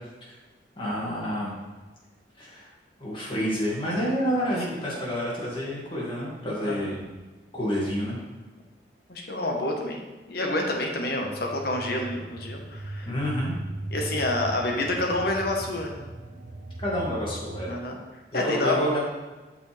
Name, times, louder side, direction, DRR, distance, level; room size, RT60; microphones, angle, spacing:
voice 1, 0.8-1.6 2.4-2.7 3.0-7.1 7.5-8.2 13.0-13.6 16.8-17.7 18.3-19.0, equal, 30° left, -5 dB, 2.2 m, -29 dB
voice 2, 9.1-10.0 10.3-13.1 13.9-15.9 17.7-18.0 18.3-18.8, left 2 dB, 55° left, 1 dB, 1.2 m, -28 dB
sound 1, 11.2-17.8, right 1 dB, 55° right, 0.7 m, -38 dB
8.3 x 6.1 x 3.4 m, 1.2 s
head